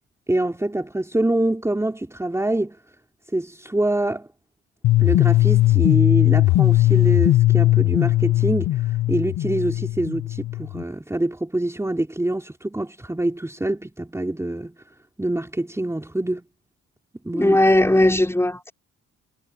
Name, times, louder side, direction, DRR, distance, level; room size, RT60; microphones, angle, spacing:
voice 1, 0.3-2.8 3.3-4.3 5.0-14.8 15.2-16.5 17.2-17.6, right 1 dB, 10° right, 3.8 m, -25 dB
sound 1, 4.8-10.8, left 16 dB, 80° left, 0.7 m, -18 dB
voice 2, 17.3-18.7, left 1 dB, 10° left, 5.0 m, -18 dB
cardioid pair, 90°, 30 cm